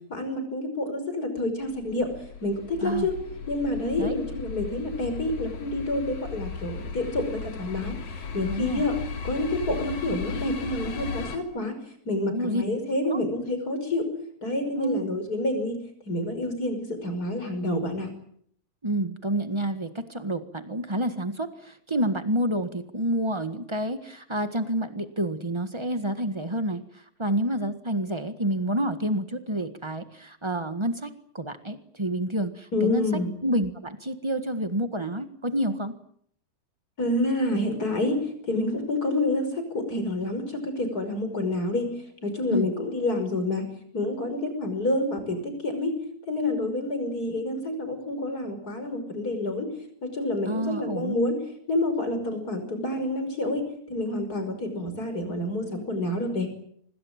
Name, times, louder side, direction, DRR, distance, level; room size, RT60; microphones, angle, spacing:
voice 1, 0.1-2.1 2.4-3.1 3.5-8.0 8.3-8.9 9.2-11.8 12.1-14.1 14.4-15.8 16.1-18.1 32.7-33.3 37.0-38.2 38.5-41.9 42.2-43.7 43.9-45.9 46.3-49.7 50.0-51.3 51.7-53.6 53.9-56.5, left 1 dB, 30° left, 8 dB, 6.0 m, -28 dB
sound 1, 1.6-11.4, left 5 dB, 70° left, 4.2 m, -36 dB
voice 2, 2.8-3.1 4.0-4.2 8.5-8.8 12.2-12.6 13.1-13.2 14.8-15.0 18.8-36.0 42.5-42.7 50.5-51.2, right 1 dB, 25° right, 9 dB, 0.5 m, -29 dB
26.0 x 20.0 x 8.8 m, 0.66 s
omnidirectional pair, 3.4 m